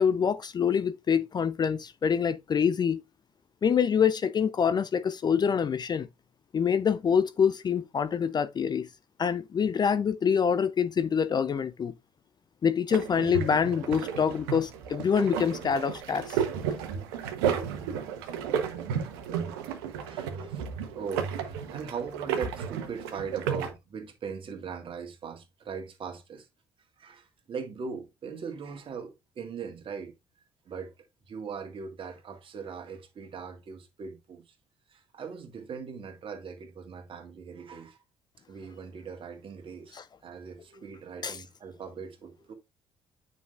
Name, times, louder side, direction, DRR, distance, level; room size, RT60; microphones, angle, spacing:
voice 1, 0.0-3.0 3.6-6.1 6.5-8.9 9.2-11.9 12.6-16.4 39.9-40.0 41.2-41.4, left 7 dB, 35° left, 0.5 m, -26 dB
sound 1, 12.9-23.7, right 7 dB, 70° right, 1.0 m, -33 dB
voice 2, 20.0-26.5 27.0-30.1 30.7-30.9 31.3-34.5 34.9-38.0 38.5-42.5, right 6 dB, 45° right, 1.8 m, -40 dB
9.3 x 5.4 x 2.4 m
figure-of-eight pair, 50°, 13 cm